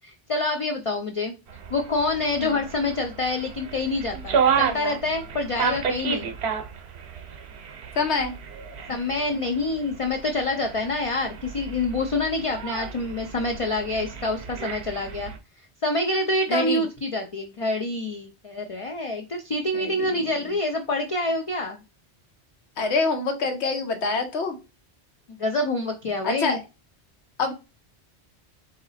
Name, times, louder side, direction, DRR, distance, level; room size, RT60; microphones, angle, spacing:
voice 1, 0.0-1.3 1.7-6.3 8.9-15.3 15.8-21.8 25.4-26.6, left 2 dB, 45° left, 4 dB, 0.4 m, -27 dB
sound 1, 1.5-15.4, right 6 dB, 70° right, 1.0 m, -31 dB
voice 2, 7.9-8.3 16.5-16.8 19.7-20.3 22.8-24.6 26.2-26.6 27.4-27.5, left 4 dB, 75° left, 6 dB, 1.3 m, -26 dB
3.8 x 2.8 x 4.1 m, 0.29 s
omnidirectional pair, 1.2 m